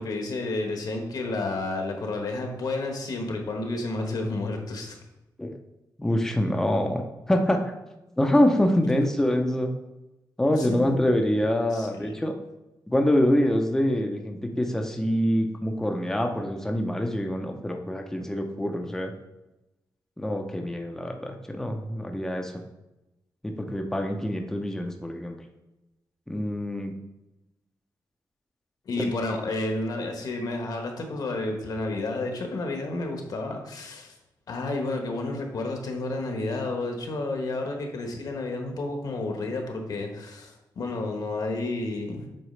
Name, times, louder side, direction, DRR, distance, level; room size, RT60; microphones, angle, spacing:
voice 1, 0.0-5.0 8.8-9.0 10.5-11.0 11.7-12.1 28.8-34.1 34.5-42.3, left 2 dB, 60° left, 3 dB, 1.1 m, -31 dB
voice 2, 6.0-7.6 8.2-9.7 10.4-12.3 12.9-19.1 20.2-22.5 23.4-25.4 26.3-26.9, left 1 dB, 5° left, 3 dB, 0.6 m, -25 dB
7.8 x 4.6 x 3.2 m, 0.99 s
wide cardioid pair, 155°, 7 cm